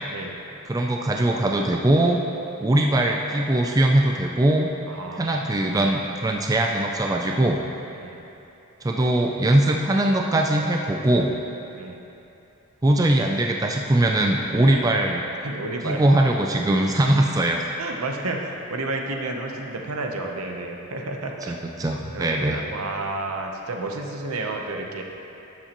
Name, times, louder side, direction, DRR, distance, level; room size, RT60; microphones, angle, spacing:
voice 1, 0.7-2.2 2.6-4.7 5.1-7.6 8.8-11.3 12.8-15.2 15.8-17.7 21.4-22.6, right 1 dB, 15° right, 1 dB, 0.3 m, -21 dB
voice 2, 4.9-5.8 8.0-8.2 11.8-12.0 14.7-15.0 15.4-16.0 17.8-21.5 22.1-25.0, right 2 dB, 75° right, 2 dB, 0.8 m, -31 dB
12.0 x 7.2 x 3.0 m, 2.9 s
head